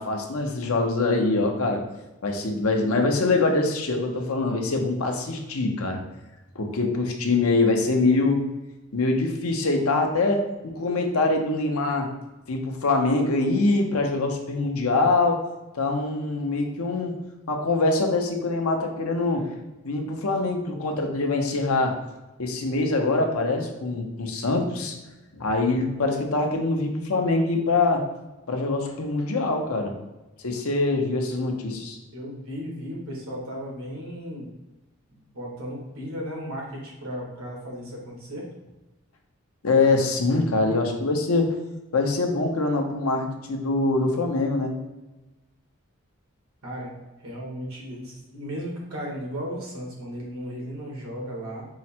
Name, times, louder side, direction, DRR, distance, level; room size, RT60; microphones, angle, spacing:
voice 1, 0.0-1.8 2.2-6.0 6.5-8.4 8.9-12.1 12.5-15.4 15.7-17.2 17.5-19.5 19.8-21.9 22.4-24.9 25.3-28.0 28.5-29.9 30.4-32.0 39.6-41.5 41.9-44.7, left 3 dB, 80° left, 3 dB, 0.7 m, -24 dB
voice 2, 32.1-34.5 35.1-38.5 46.6-46.9 47.2-51.7, equal, 80° right, -2 dB, 1.4 m, -35 dB
4.7 x 2.1 x 4.3 m, 1.1 s
head